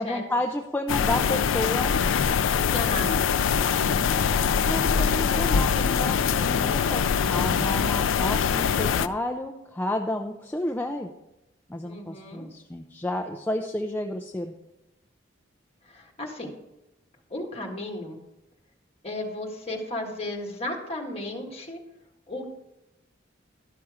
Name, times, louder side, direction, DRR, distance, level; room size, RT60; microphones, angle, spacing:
voice 1, 0.0-2.0 4.7-11.1 11.7-14.5, left 1 dB, 10° left, 3 dB, 0.4 m, -31 dB
sound 1, 0.9-9.1, left 6 dB, 90° left, 0.4 m, -23 dB
voice 2, 2.6-3.3 4.9-5.6 11.8-12.5 15.8-16.5 17.3-18.2 19.0-21.8 22.3-22.4, left 2 dB, 30° left, 1 dB, 1.6 m, -35 dB
12.0 x 5.9 x 4.8 m, 0.94 s
head